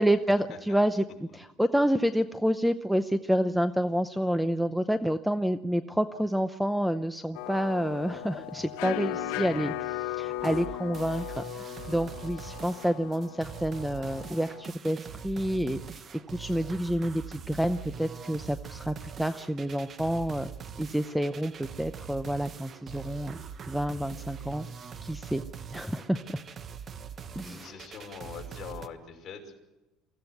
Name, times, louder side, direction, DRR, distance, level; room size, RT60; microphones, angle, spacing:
voice 1, 0.0-16.0 16.3-20.5 20.8-24.7 25.0-25.4 25.7-26.2 27.4-27.7, equal, ahead, 10 dB, 0.7 m, -29 dB
sound 1, 7.3-14.7, left 12 dB, 90° left, 1.0 m, -37 dB
sound 2, 10.4-28.9, right 7 dB, 35° right, 1.1 m, -43 dB
voice 2, 27.3-29.5, left 6 dB, 40° left, 2 dB, 5.5 m, -43 dB
24.5 x 16.0 x 7.9 m, 1.0 s
cardioid pair, 135°, 0 cm